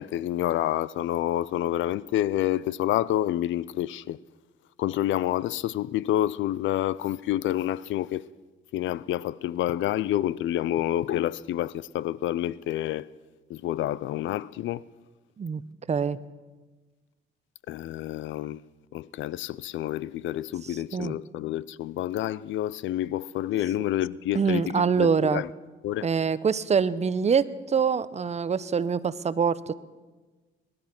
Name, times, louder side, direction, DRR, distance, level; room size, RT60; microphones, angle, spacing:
voice 1, 0.0-4.2 4.8-8.2 8.7-13.1 13.5-14.8 17.7-18.6 18.9-24.6 25.0-25.5 25.8-26.1, left 13 dB, 75° left, 0.5 m, -28 dB
voice 2, 15.9-16.2 20.6-21.1 24.3-25.4 26.0-29.7, right 6 dB, 35° right, 0.7 m, -25 dB
21.0 x 11.5 x 5.9 m
cardioid pair, 90°, 20 cm